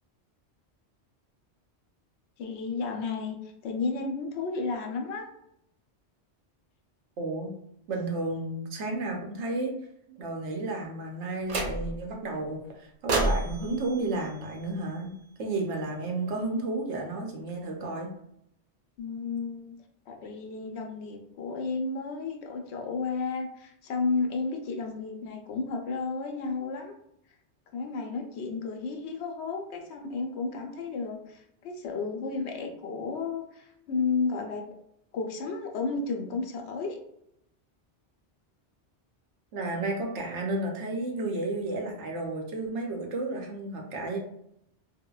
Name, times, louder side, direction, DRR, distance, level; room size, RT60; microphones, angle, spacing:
voice 1, 2.4-3.4 3.6-5.3 19.0-19.7 20.1-26.9 27.7-34.6 35.1-37.0, left 4 dB, 75° left, 2 dB, 0.8 m, -32 dB
voice 2, 7.2-7.5 7.9-9.8 10.1-18.2 39.5-44.2, right 2 dB, 90° right, 1 dB, 1.0 m, -32 dB
sound 1, 11.5-12.1 13.1-15.3, right 2 dB, 60° right, 0.4 m, -31 dB
3.6 x 2.1 x 2.2 m, 0.75 s
omnidirectional pair, 1.2 m